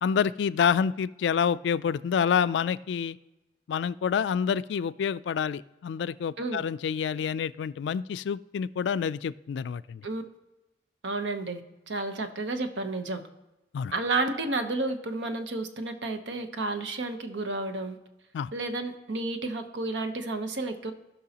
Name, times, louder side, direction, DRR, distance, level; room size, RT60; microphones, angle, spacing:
voice 1, 0.0-3.2 3.7-10.0 13.7-13.9 18.3-18.5, left 7 dB, 80° left, 17 dB, 0.3 m, -28 dB
voice 2, 11.0-11.6 11.9-13.2 13.9-18.0 18.5-20.9, right 2 dB, 85° right, 8 dB, 0.9 m, -31 dB
16.0 x 5.5 x 2.9 m, 0.97 s
head